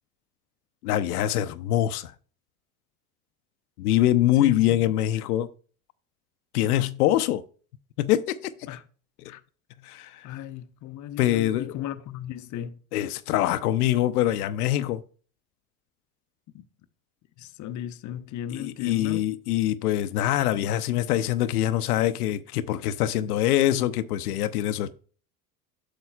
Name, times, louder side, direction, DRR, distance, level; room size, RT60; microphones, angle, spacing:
voice 1, 0.8-2.1 3.8-5.5 6.5-7.4 8.0-8.7 9.8-10.3 11.2-11.7 12.9-15.0 18.5-25.0, left 13 dB, 85° left, 0.6 m, -24 dB
voice 2, 4.4-4.9 8.7-8.8 9.3-9.4 10.2-12.8 16.5-16.7 17.4-19.3, left 11 dB, 40° left, 0.7 m, -36 dB
9.6 x 6.7 x 2.3 m
hypercardioid pair, 90°, 44 cm